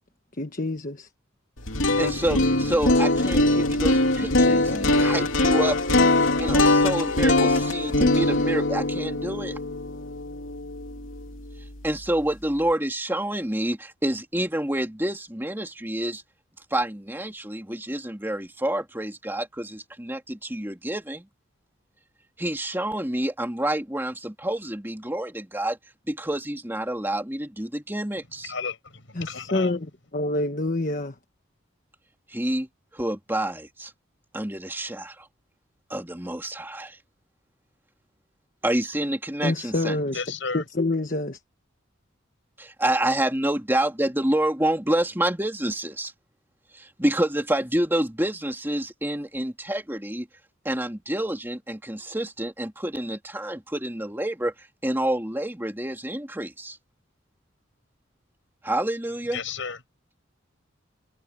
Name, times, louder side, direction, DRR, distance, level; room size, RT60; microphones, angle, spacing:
voice 1, 0.4-1.1 29.1-31.1 39.4-40.1 40.5-41.4, left 2 dB, 40° left, 1.3 m, -27 dB
sound 1, 1.6-11.6, left 2 dB, 85° left, 2.9 m, -22 dB
voice 2, 2.0-9.6 11.8-16.2 16.7-21.3 22.4-25.8 26.1-28.5 32.3-32.7 32.9-33.9 34.3-35.3 35.9-37.0 38.6-40.0 42.6-46.1 46.7-50.3 50.6-56.8 58.6-59.4, right 1 dB, 10° right, 2.6 m, -28 dB
voice 3, 28.4-29.8 40.1-40.6 59.3-59.8, left 5 dB, 70° left, 7.8 m, -33 dB
head